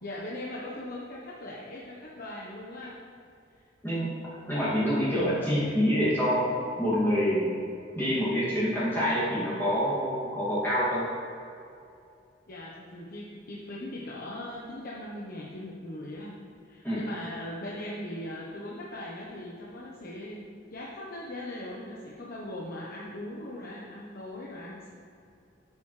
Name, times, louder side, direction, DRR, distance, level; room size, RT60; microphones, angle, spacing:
voice 1, 0.0-3.0 12.5-16.4 16.6-20.5 20.7-24.9, left 1 dB, 50° left, -5 dB, 1.1 m, -39 dB
voice 2, 4.5-6.5 6.8-7.6 7.9-11.1 16.8-17.0, equal, 10° left, -11 dB, 2.5 m, -26 dB
13.5 x 7.3 x 3.3 m, 2.5 s
head